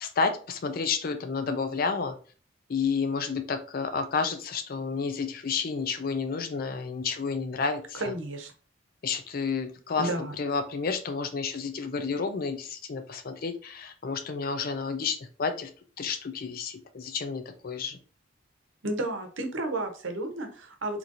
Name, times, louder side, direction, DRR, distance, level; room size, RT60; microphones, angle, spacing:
voice 1, 0.0-2.1 2.7-8.1 9.0-10.1 10.4-15.7 16.0-18.0, left 5 dB, 50° left, 8 dB, 0.4 m, -30 dB
voice 2, 7.9-8.5 10.0-10.3 18.8-21.0, right 1 dB, 85° right, 5 dB, 0.8 m, -32 dB
3.9 x 3.0 x 2.6 m, 0.39 s
head